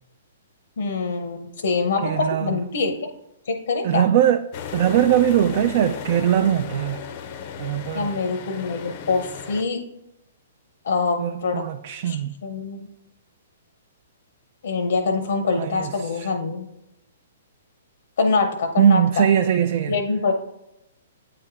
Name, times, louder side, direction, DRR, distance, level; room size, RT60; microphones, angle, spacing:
voice 1, 0.8-2.9 3.5-4.0 7.9-9.8 10.8-11.6 12.0-12.9 14.6-16.7 18.2-19.2 19.9-20.3, left 4 dB, 75° left, 0.7 m, -24 dB
voice 2, 2.0-2.6 3.8-4.5 4.7-7.0 7.6-8.1 11.2-12.3 15.6-16.3 18.8-20.0, right 10 dB, 45° right, 0.3 m, -21 dB
sound 1, 4.5-9.6, left 7 dB, 40° left, 0.5 m, -35 dB
8.4 x 3.4 x 3.6 m
hypercardioid pair, 150°, 0 cm